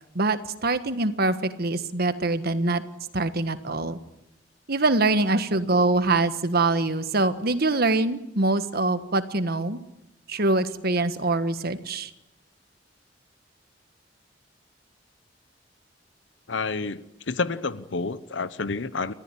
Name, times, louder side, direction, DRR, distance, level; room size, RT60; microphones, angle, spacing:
voice 1, 0.1-2.8 3.1-4.0 4.7-9.8 10.3-12.1, right 2 dB, 55° right, 11 dB, 1.5 m, -24 dB
voice 2, 16.5-19.1, left 4 dB, 80° left, 15 dB, 0.9 m, -29 dB
29.0 x 14.5 x 10.0 m, 0.91 s
head